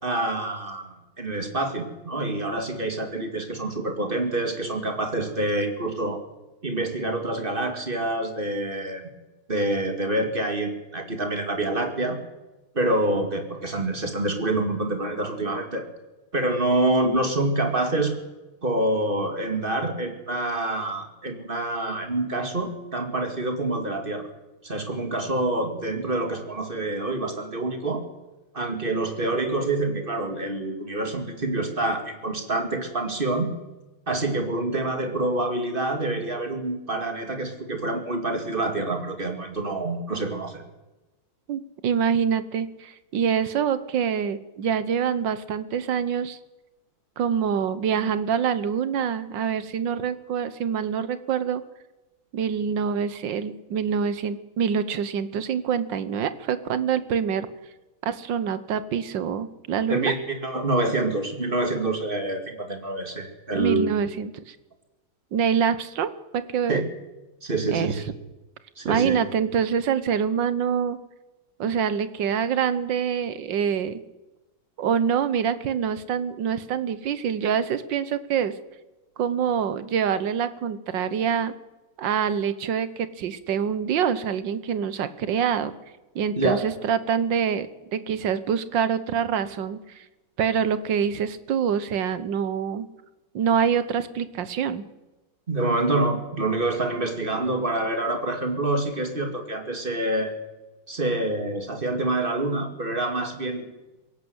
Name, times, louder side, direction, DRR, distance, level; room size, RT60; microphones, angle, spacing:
voice 1, 0.0-6.2 6.6-9.1 9.5-12.2 12.7-15.9 16.3-18.2 18.6-24.3 24.6-28.0 28.5-33.5 34.1-40.6 59.9-63.9 66.7-66.9 67.4-68.1 68.8-69.2 86.4-86.6 95.5-100.3 100.9-103.6, right 2 dB, 25° right, 5 dB, 2.4 m, -26 dB
voice 2, 41.5-46.4 47.2-51.6 52.3-57.5 58.0-60.1 63.5-64.5 65.3-66.8 67.7-67.9 68.8-71.0 71.6-74.0 74.8-78.5 79.2-81.5 82.0-85.7 86.1-90.0 90.4-92.9 93.3-94.8, right 7 dB, 65° right, 13 dB, 1.6 m, -25 dB
21.0 x 17.5 x 8.0 m, 1.1 s
omnidirectional pair, 2.2 m